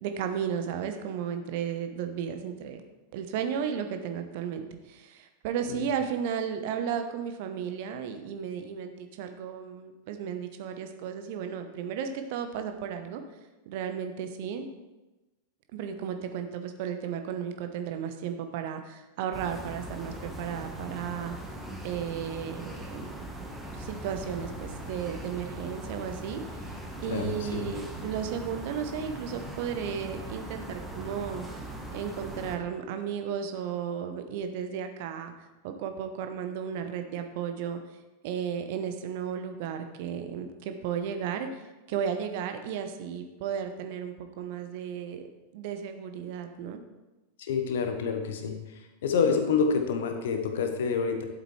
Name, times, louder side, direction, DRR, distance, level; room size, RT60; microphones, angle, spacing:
voice 1, 0.0-2.8 3.1-13.2 13.7-14.7 15.7-21.4 21.8-23.1 23.7-26.7 27.0-31.4 31.9-35.3 35.6-37.8 38.2-45.3 45.5-46.8, right 8 dB, 50° right, 7 dB, 0.9 m, -34 dB
sound 1, 19.3-32.6, right 1 dB, 5° right, 1.3 m, -40 dB
voice 2, 27.1-27.6 47.4-48.5 49.0-51.2, left 5 dB, 60° left, 6 dB, 1.1 m, -27 dB
11.5 x 7.9 x 3.3 m, 1.1 s
figure-of-eight pair, 90°, 0 cm